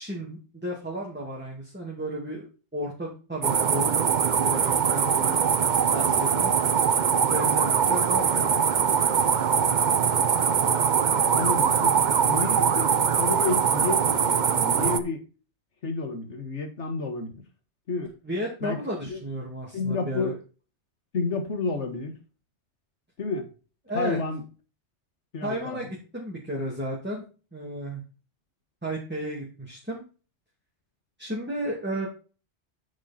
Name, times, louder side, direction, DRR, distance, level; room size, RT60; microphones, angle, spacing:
voice 1, 0.0-2.5 2.7-5.5 5.9-6.5 7.2-8.7 11.1-11.5 18.2-20.3 23.9-24.2 25.4-27.2 27.5-28.0 28.8-30.0 31.2-32.1, right 1 dB, 10° right, 2.4 m, -33 dB
sound 1, 3.4-15.0, right 7 dB, 50° right, 0.8 m, -22 dB
voice 2, 11.3-11.9 12.3-15.2 15.8-17.4 17.9-18.1 18.6-18.8 19.1-19.2 19.7-20.4 21.1-22.1 23.2-23.5 23.9-24.4 25.3-25.8, left 4 dB, 90° left, 2.0 m, -30 dB
9.8 x 6.0 x 4.3 m
omnidirectional pair, 1.2 m